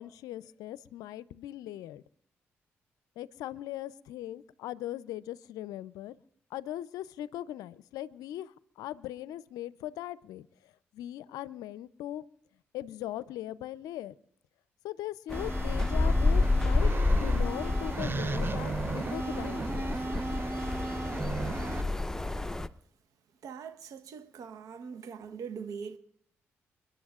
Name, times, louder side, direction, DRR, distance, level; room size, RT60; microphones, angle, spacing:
voice 1, 0.0-2.0 3.2-6.2 6.5-10.5 10.9-12.2 12.7-14.1 14.8-19.9, left 13 dB, 80° left, 0.5 m, -39 dB
sound 1, 15.3-22.7, left 2 dB, 10° left, 0.8 m, -29 dB
sound 2, 15.3-21.8, right 3 dB, 35° right, 0.6 m, -36 dB
voice 2, 23.4-26.0, right 6 dB, 70° right, 1.0 m, -42 dB
29.5 x 11.0 x 2.4 m
hypercardioid pair, 40°, 6 cm